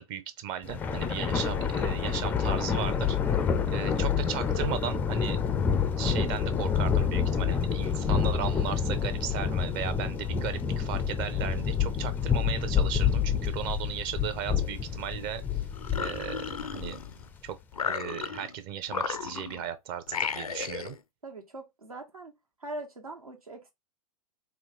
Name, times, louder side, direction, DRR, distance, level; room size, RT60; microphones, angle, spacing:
voice 1, 0.0-3.2 3.7-5.4 6.0-15.6 16.0-17.0 17.4-17.6 17.8-21.0, right 10 dB, 35° right, 0.7 m, -36 dB
Thunder, 0.6-17.2, left 7 dB, 10° left, 0.3 m, -28 dB
sound 1, 15.7-17.3 17.7-18.5 18.9-19.7 20.1-21.0, left 6 dB, 80° left, 0.4 m, -34 dB
voice 2, 21.2-22.3 22.6-23.7, right 1 dB, 80° right, 1.4 m, -41 dB
4.4 x 2.3 x 3.8 m
figure-of-eight pair, 100°, 18 cm